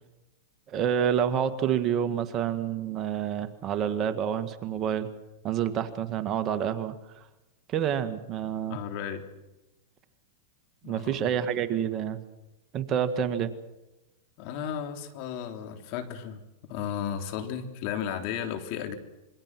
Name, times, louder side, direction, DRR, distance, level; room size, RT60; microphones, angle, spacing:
voice 1, 0.7-5.1 5.4-7.0 7.7-8.8 10.9-12.2 12.7-13.5, right 9 dB, 35° right, 9 dB, 1.8 m, -28 dB
voice 2, 8.7-9.2 10.8-11.2 14.4-19.0, left 8 dB, 50° left, 6 dB, 3.5 m, -34 dB
27.0 x 23.0 x 6.1 m, 1.0 s
hypercardioid pair, 125°, 0 cm